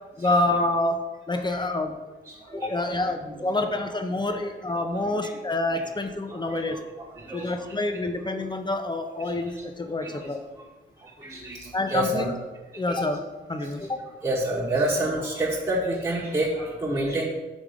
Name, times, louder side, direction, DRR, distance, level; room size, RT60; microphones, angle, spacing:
voice 1, 0.2-2.0 2.5-6.8 7.3-10.4 11.7-12.3 12.7-13.2 13.5-14.0, left 2 dB, 20° left, 6 dB, 0.8 m, -27 dB
voice 2, 2.3-3.7 4.3-4.4 4.9-5.4 5.7-5.9 6.3-6.8 7.1-7.8 9.2-9.6 10.0-10.3 11.0-12.3 12.9-13.1 13.6-17.3, right 1 dB, 20° right, -6 dB, 1.2 m, -30 dB
5.3 x 3.5 x 5.0 m, 1.2 s
cardioid pair, 55°, 21 cm